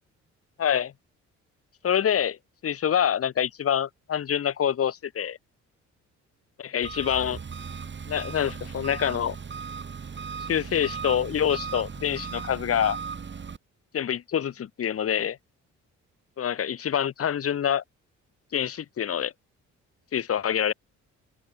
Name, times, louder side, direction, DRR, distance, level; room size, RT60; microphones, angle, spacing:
voice 1, 0.6-0.9 1.8-2.4 2.6-5.4 6.6-7.4 8.1-9.3 10.5-13.0 13.9-15.4 16.4-17.8 18.5-19.3 20.1-20.7, left 9 dB, 50° left, 1.4 m, -26 dB
Engine, 6.8-13.6, right 6 dB, 40° right, 3.4 m, -37 dB
open air
cardioid pair, 90°, 30 cm